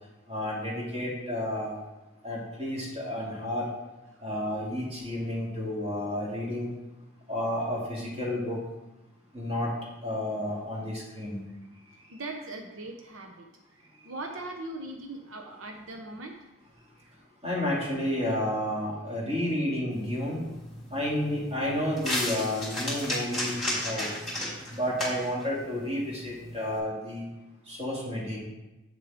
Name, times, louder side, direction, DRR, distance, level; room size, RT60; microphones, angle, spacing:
voice 1, 0.3-1.8 2.2-3.7 4.2-6.7 7.3-8.6 9.3-9.7 10.0-11.4 17.4-20.4 20.9-24.1 24.7-27.3 27.7-28.4, left 1 dB, 25° right, -5 dB, 2.5 m, -31 dB
voice 2, 11.7-16.3 17.0-17.1 19.2-19.3, right 2 dB, 85° right, 3 dB, 0.9 m, -41 dB
sound 1, 19.9-26.8, left 1 dB, ahead, 3.0 m, -35 dB
8.4 x 6.8 x 3.7 m, 1.0 s
head